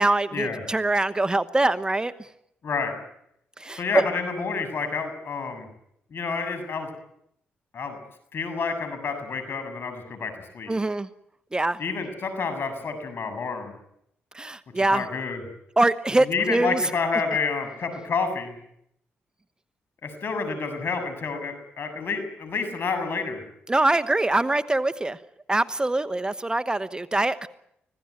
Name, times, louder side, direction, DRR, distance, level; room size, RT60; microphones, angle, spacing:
voice 1, 0.0-2.1 3.6-4.0 10.7-11.1 11.5-11.8 14.3-15.0 15.8-16.8 23.7-25.2 25.5-27.5, right 2 dB, 20° right, 13 dB, 1.1 m, -23 dB
voice 2, 2.6-2.9 3.8-5.7 6.1-6.9 7.7-8.0 8.3-10.7 11.8-13.7 14.9-15.4 16.2-18.5 20.0-23.4, left 5 dB, 60° left, 9 dB, 7.0 m, -29 dB
25.5 x 17.0 x 9.6 m, 0.76 s
supercardioid pair, 65°, 4 cm